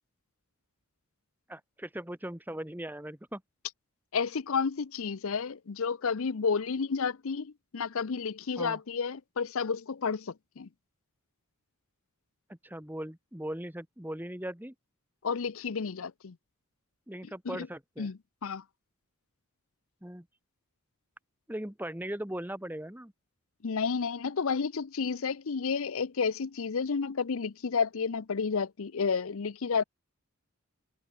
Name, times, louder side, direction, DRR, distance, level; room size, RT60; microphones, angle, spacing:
voice 1, 1.5-3.4 8.6-8.8 12.5-14.7 17.1-18.1 20.0-20.3 21.5-23.1, right 1 dB, 10° right, 1.4 m, -39 dB
voice 2, 4.1-10.7 15.2-16.3 17.5-17.7 18.0-18.6 23.6-29.8, left 5 dB, 65° left, 0.6 m, -31 dB
head